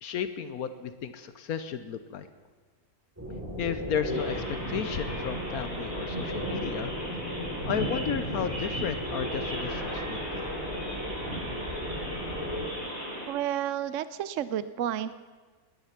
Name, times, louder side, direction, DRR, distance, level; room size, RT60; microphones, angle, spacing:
voice 1, 0.0-2.3 3.6-6.9 7.6-10.5, left 8 dB, 80° left, 10 dB, 1.3 m, -33 dB
sound 1, 3.2-12.7, equal, 10° right, 3.3 m, -36 dB
sound 2, 4.1-13.3, equal, 30° left, 5.0 m, -36 dB
voice 2, 13.3-15.1, right 10 dB, 65° right, 14 dB, 0.9 m, -31 dB
20.5 x 11.0 x 5.9 m, 1.4 s
omnidirectional pair, 1.6 m